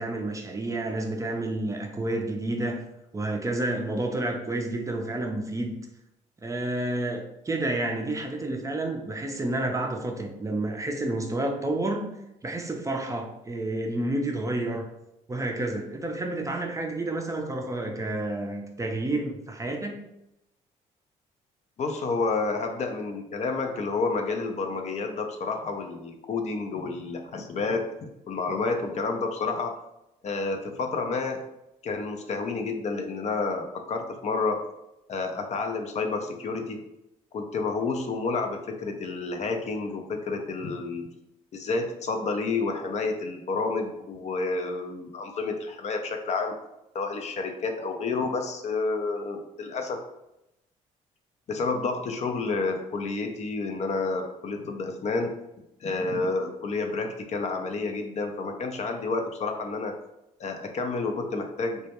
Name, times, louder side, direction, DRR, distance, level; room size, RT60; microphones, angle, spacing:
voice 1, 0.0-2.8 3.1-5.8 6.4-12.1 12.4-14.9 15.3-20.0, right 2 dB, 20° right, 0.4 m, -30 dB
voice 2, 21.8-29.8 30.2-31.4 31.8-34.6 35.1-36.8 37.3-41.1 41.5-46.5 46.9-50.0 51.5-55.4 55.8-60.0 60.4-61.9, left 3 dB, 45° left, 0.4 m, -30 dB
2.2 x 2.1 x 2.8 m
supercardioid pair, 65°, 16 cm